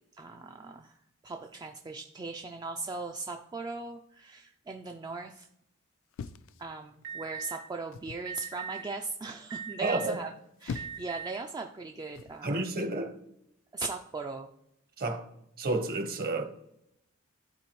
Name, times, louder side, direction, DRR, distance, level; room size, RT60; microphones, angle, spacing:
voice 1, 0.1-0.9 1.2-5.5 6.6-10.3 10.6-12.6 13.7-14.5, right 3 dB, 20° right, 0.3 m, -38 dB
sound 1, 6.1-7.2 7.9-8.3 10.3-11.2 12.1-12.4, left 5 dB, 65° left, 0.3 m, -42 dB
Alarm, 7.0-7.6 8.3-8.8 9.5-10.2 10.7-11.3, right 7 dB, 65° right, 1.8 m, -39 dB
voice 2, 9.8-10.2 12.4-13.1 15.0-15.3 15.6-16.4, right 2 dB, 45° right, 0.9 m, -30 dB
12.0 x 4.2 x 3.0 m
head